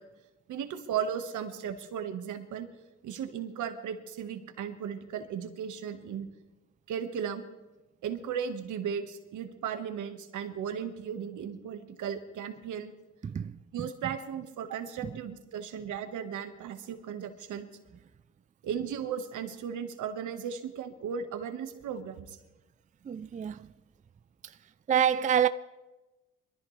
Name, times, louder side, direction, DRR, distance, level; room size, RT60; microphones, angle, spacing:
voice 1, 0.5-2.7 3.0-6.3 6.9-7.4 8.0-12.9 13.7-17.7 18.6-22.4, right 8 dB, 80° right, 1.5 m, -36 dB
voice 2, 13.2-13.9 15.0-15.2 23.0-23.7 24.4-24.6 24.9-25.5, right 8 dB, 25° right, 0.4 m, -28 dB
22.5 x 14.0 x 3.3 m
cardioid pair, 90°, 30 cm